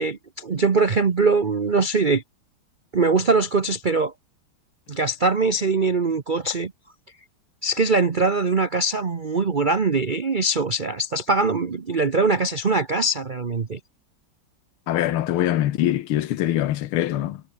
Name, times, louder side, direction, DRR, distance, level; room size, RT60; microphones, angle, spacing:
voice 1, 0.0-2.2 2.9-4.1 4.9-6.7 7.6-13.8, right 3 dB, 60° right, 0.5 m, -22 dB
voice 2, 14.9-17.4, left 13 dB, 85° left, 1.8 m, -23 dB
omnidirectional pair, 2.3 m